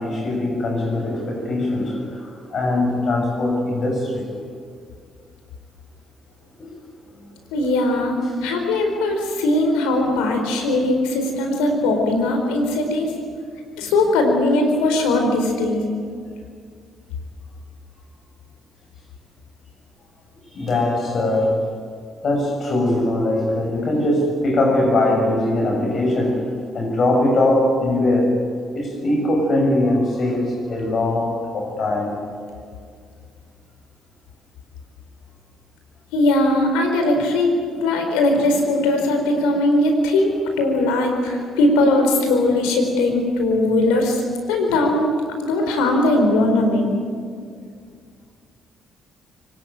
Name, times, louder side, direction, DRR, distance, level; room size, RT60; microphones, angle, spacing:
voice 1, 0.0-4.3 6.6-6.7 20.5-21.6 22.2-28.4 28.7-32.2, left 1 dB, 55° left, 1 dB, 6.7 m, -21 dB
voice 2, 7.5-13.1 13.8-15.8 36.1-37.5 37.8-44.2 44.5-45.1 45.4-46.9, left 2 dB, 85° left, 3 dB, 4.4 m, -19 dB
24.0 x 20.0 x 9.0 m, 2.1 s
hypercardioid pair, 55°, 0 cm